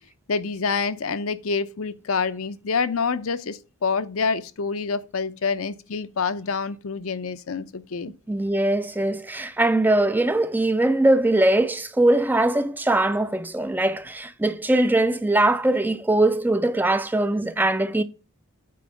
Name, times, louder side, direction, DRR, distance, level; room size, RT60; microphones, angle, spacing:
voice 1, 0.3-8.1, left 5 dB, 80° left, 0.6 m, -27 dB
voice 2, 8.3-18.0, right 1 dB, 10° right, 0.3 m, -21 dB
8.5 x 4.3 x 5.0 m
head